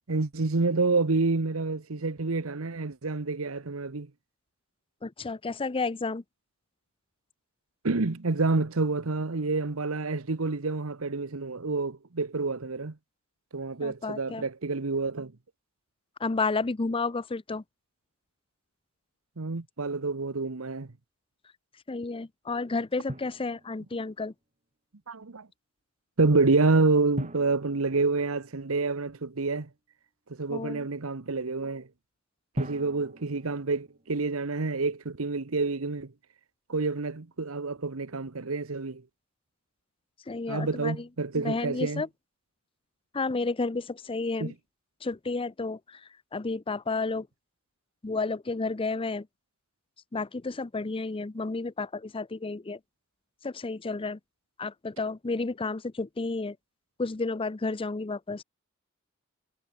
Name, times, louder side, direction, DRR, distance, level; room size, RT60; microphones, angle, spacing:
voice 1, 0.1-4.1 7.8-12.9 13.5-15.3 19.4-20.9 25.1-25.5 26.2-29.7 30.4-31.9 32.6-36.1 36.7-39.0 40.5-42.0 44.4-44.5, right 3 dB, 85° right, 1.1 m, -28 dB
voice 2, 5.0-6.2 13.8-14.4 16.2-17.6 21.9-24.3 30.5-30.9 40.3-41.1 41.3-42.1 43.1-44.5 45.0-46.0 46.3-47.3 48.0-49.3 50.1-52.8 53.4-54.2 54.6-56.6 57.0-58.4, left 3 dB, 25° left, 0.6 m, -31 dB
Drum, 23.1-24.2 27.2-29.0 32.5-34.5, equal, 35° right, 4.2 m, -40 dB
head